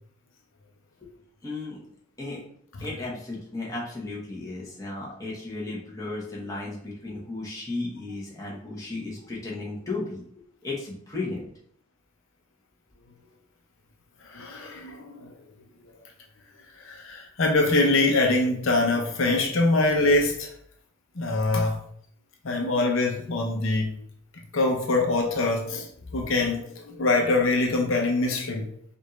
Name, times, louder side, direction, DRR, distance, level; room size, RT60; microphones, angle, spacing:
voice 1, 1.4-1.8 2.2-2.4 2.8-10.2 10.6-11.5, left 2 dB, 15° left, -5 dB, 1.1 m, -34 dB
voice 2, 14.2-15.3 16.7-20.5 21.2-21.8 22.4-24.0 24.5-25.9 26.1-28.7, left 2 dB, 75° left, 1 dB, 0.8 m, -24 dB
5.2 x 2.6 x 3.2 m, 0.64 s
head